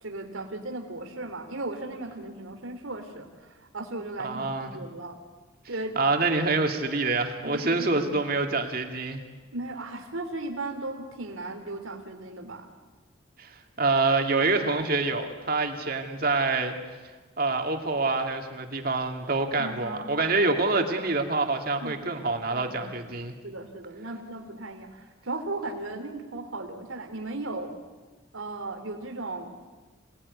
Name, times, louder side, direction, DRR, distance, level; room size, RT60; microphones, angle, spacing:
voice 1, 0.0-5.2 5.7-6.0 7.4-8.0 9.5-12.6 19.6-20.2 21.7-22.2 22.5-23.1 23.4-27.7 28.3-29.5, right 2 dB, 85° right, 4 dB, 3.2 m, -36 dB
voice 2, 4.2-4.7 6.0-9.2 13.4-16.7 17.4-23.3, right 3 dB, 45° right, 4 dB, 2.4 m, -26 dB
27.0 x 19.0 x 9.7 m, 1.3 s
head